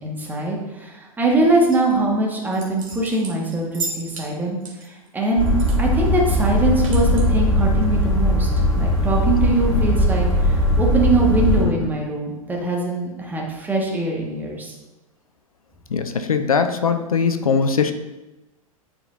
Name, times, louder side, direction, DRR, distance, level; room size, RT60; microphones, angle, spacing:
voice 1, 0.0-8.5 8.8-14.7, right 2 dB, 10° right, -2 dB, 1.6 m, -22 dB
sound 1, 1.7-2.0 2.5-4.3 4.6-5.8 6.1-6.2 6.5-7.3, right 4 dB, 65° right, 1.9 m, -34 dB
sound 2, 5.4-11.6, left 1 dB, 15° left, 2.6 m, -19 dB
voice 2, 15.9-17.9, left 5 dB, 75° left, 9 dB, 0.6 m, -20 dB
11.0 x 4.9 x 2.7 m, 1.1 s
figure-of-eight pair, 100°, 18 cm